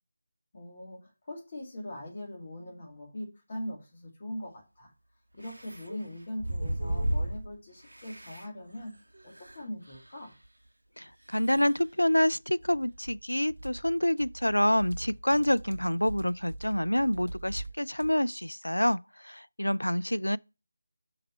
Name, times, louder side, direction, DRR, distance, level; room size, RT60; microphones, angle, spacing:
voice 1, 0.5-4.9 5.3-8.9 9.2-10.3 19.8-20.2, left 1 dB, 35° left, 2.3 m, -41 dB
sound 1, 4.4-4.5 5.4-7.6 7.8-8.5 8.8-8.9 9.1-10.1 10.4-10.5 11.3-11.8 12.6-13.2 13.5-17.7 18.0-18.1, right 1 dB, 70° right, 0.8 m, -37 dB
voice 2, 11.0-20.4, left 1 dB, 80° left, 0.3 m, -27 dB
5.7 x 5.3 x 5.6 m
figure-of-eight pair, 160°, 0 cm